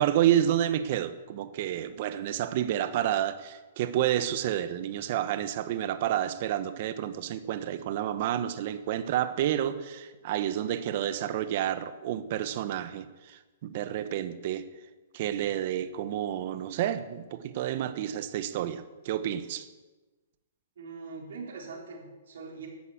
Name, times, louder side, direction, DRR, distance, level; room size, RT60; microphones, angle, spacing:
voice 1, 0.0-14.6 15.1-19.7, right 11 dB, 50° right, 11 dB, 1.0 m, -29 dB
voice 2, 20.8-22.7, right 4 dB, 75° right, -1 dB, 4.3 m, -42 dB
12.0 x 8.3 x 7.6 m, 1.2 s
hypercardioid pair, 140°, 0 cm